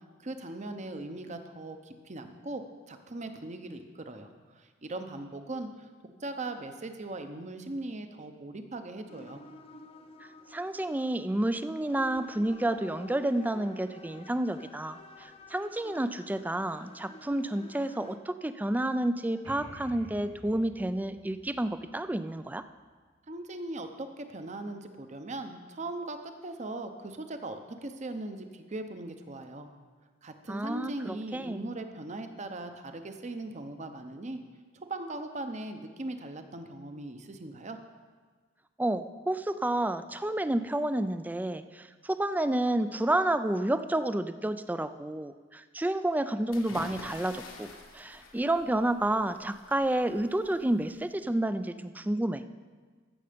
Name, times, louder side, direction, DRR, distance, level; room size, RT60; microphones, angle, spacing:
voice 1, 0.2-5.9 6.2-9.4 23.3-29.7 30.2-34.4 34.9-37.8, right 2 dB, 35° right, 7 dB, 0.7 m, -39 dB
sound 1, 9.1-18.2, left 2 dB, 30° left, 0.6 m, -50 dB
voice 2, 10.5-22.6 30.5-31.6 38.8-52.4, right 1 dB, 10° right, 11 dB, 0.3 m, -30 dB
sound 2, 19.4-23.1, equal, 75° right, 3.2 m, -51 dB
sound 3, 46.5-51.3, left 3 dB, 80° left, 1.5 m, -48 dB
15.0 x 6.7 x 5.1 m, 1.5 s
head